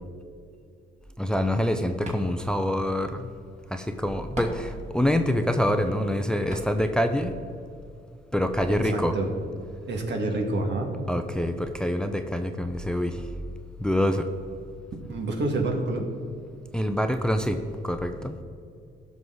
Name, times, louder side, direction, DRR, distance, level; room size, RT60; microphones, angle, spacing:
voice 1, 1.2-3.3 3.7-7.4 8.3-9.2 11.1-13.2 13.8-14.3 16.7-18.4, left 1 dB, 5° left, 7 dB, 0.6 m, -26 dB
sound 1, 1.4-7.3, right 1 dB, 35° right, 2.5 m, -43 dB
voice 2, 8.9-9.3 9.9-10.9 15.1-16.0, right 2 dB, 60° right, 2 dB, 1.9 m, -27 dB
16.0 x 6.2 x 3.9 m, 2.5 s
cardioid pair, 90°, 20 cm